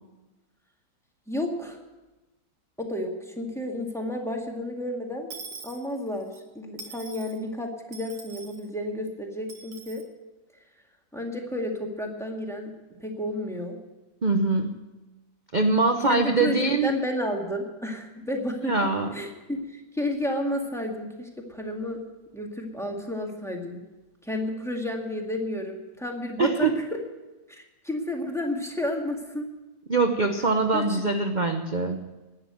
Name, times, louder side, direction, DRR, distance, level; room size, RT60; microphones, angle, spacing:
voice 1, 1.3-1.8 2.8-5.3 5.6-10.0 11.1-12.7 13.0-13.8 16.0-18.7 19.1-22.0 22.3-23.8 24.2-27.0 27.5-29.5 30.7-31.1, left 1 dB, ahead, 1 dB, 1.8 m, -31 dB
Dishes pots and pans / Coin (dropping), 5.3-6.4 6.8-7.4 7.9-8.6 9.5-10.0, right 4 dB, 85° right, 2.2 m, -43 dB
voice 2, 14.2-14.8 15.5-16.9 18.7-19.1 26.4-26.7 29.9-32.0, right 3 dB, 45° right, 5 dB, 0.6 m, -23 dB
11.5 x 10.0 x 9.0 m, 1.1 s
omnidirectional pair, 2.1 m